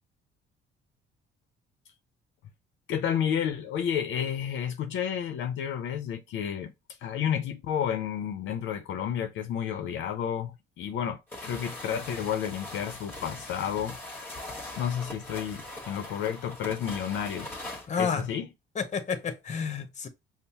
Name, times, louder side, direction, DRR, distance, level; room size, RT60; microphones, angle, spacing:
voice 1, 2.9-6.7 7.0-14.0 14.5-17.7 18.0-18.5, left 8 dB, 70° left, 0.6 m, -31 dB
sound 1, 11.3-17.9, left 1 dB, 10° left, 1.3 m, -41 dB
voice 2, 17.9-18.3 18.7-20.1, left 6 dB, 35° left, 0.8 m, -30 dB
5.3 x 2.0 x 2.8 m
cardioid pair, 90°, 20 cm